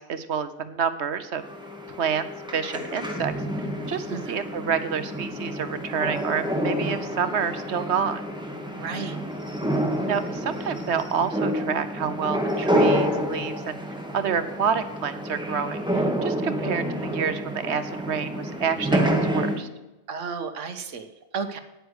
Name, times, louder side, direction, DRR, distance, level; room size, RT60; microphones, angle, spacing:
voice 1, 0.1-1.4 2.0-2.2 2.5-3.3 3.9-8.2 10.1-13.7 14.1-16.8 17.1-19.7, right 7 dB, 70° right, 11 dB, 1.1 m, -28 dB
sound 1, 1.4-19.6, equal, 5° right, 1.6 m, -28 dB
voice 2, 4.1-4.4 8.8-9.2 20.1-21.1 21.3-21.6, right 5 dB, 90° right, 8 dB, 1.3 m, -33 dB
9.5 x 9.4 x 6.5 m, 1.0 s
omnidirectional pair, 1.2 m